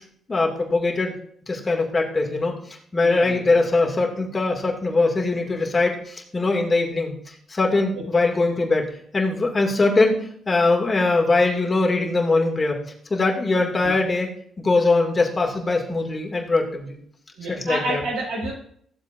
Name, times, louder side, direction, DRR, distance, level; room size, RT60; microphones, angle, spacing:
voice 1, 0.3-1.1 1.5-2.5 2.9-12.8 13.1-14.3 14.6-17.0 17.5-18.0, left 3 dB, 35° left, 1 dB, 2.5 m, -21 dB
voice 2, 3.0-3.5 7.9-8.0 13.8-13.9 17.4-18.5, right 1 dB, 80° right, -6 dB, 4.8 m, -29 dB
15.5 x 7.2 x 2.7 m, 0.64 s
hypercardioid pair, 45°, 0 cm